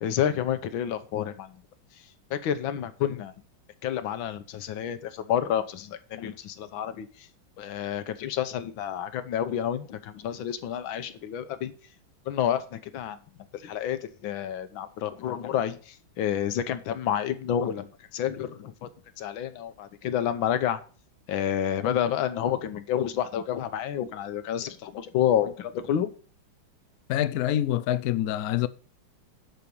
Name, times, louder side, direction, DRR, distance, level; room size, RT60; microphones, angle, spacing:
voice 1, 0.0-1.6 2.3-3.3 3.8-7.3 7.6-11.7 12.3-13.2 13.5-17.9 18.1-18.9 19.2-20.8 21.3-26.1, left 10 dB, 75° left, 1.7 m, -29 dB
voice 2, 27.1-28.7, left 12 dB, 90° left, 0.8 m, -26 dB
11.0 x 4.5 x 6.9 m
omnidirectional pair, 2.3 m